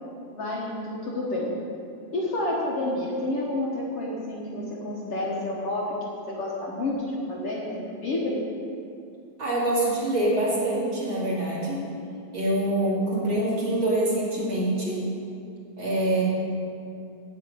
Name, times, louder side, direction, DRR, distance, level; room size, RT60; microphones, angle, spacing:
voice 1, 0.3-1.6 2.1-8.4, left 1 dB, 55° left, -4 dB, 2.2 m, -29 dB
voice 2, 9.4-11.8 12.3-15.0 15.8-16.2, right 1 dB, 40° right, -7 dB, 3.1 m, -25 dB
8.8 x 8.1 x 8.9 m, 2.5 s
omnidirectional pair, 3.6 m